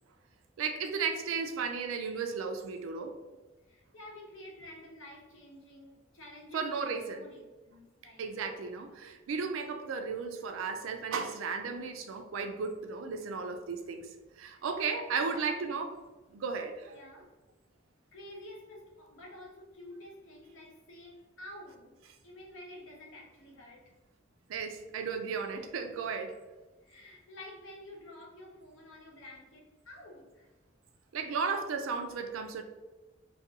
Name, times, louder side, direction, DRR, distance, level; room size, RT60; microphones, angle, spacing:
voice 1, 0.6-3.2 6.5-7.2 8.2-14.1 14.4-15.9 16.3-16.9 24.5-26.4 31.1-32.6, right 5 dB, 75° right, 6 dB, 0.4 m, -34 dB
voice 2, 3.6-8.3 14.5-14.7 15.2-15.6 16.9-17.3 18.1-21.9 22.2-23.9 26.8-30.5, left 1 dB, 70° left, -2 dB, 0.8 m, -50 dB
2.4 x 2.2 x 2.7 m, 1.2 s
head